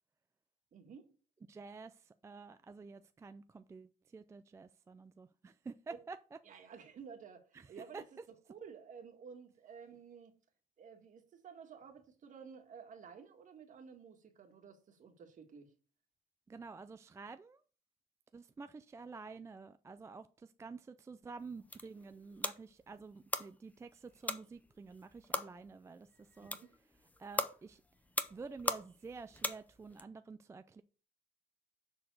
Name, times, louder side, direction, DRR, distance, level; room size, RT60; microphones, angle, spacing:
voice 1, 0.7-1.1 6.5-8.0 8.5-10.3 10.8-15.7 26.4-26.7, right 6 dB, 50° right, 1.7 m, -53 dB
voice 2, 1.5-6.4 7.5-8.0 16.5-17.6 18.3-26.6 27.2-27.8 28.3-30.8, right 4 dB, 15° right, 0.3 m, -50 dB
sound 1, 21.4-30.0, left 2 dB, 10° left, 0.7 m, -41 dB
6.8 x 4.0 x 6.4 m
cardioid pair, 110°, 17 cm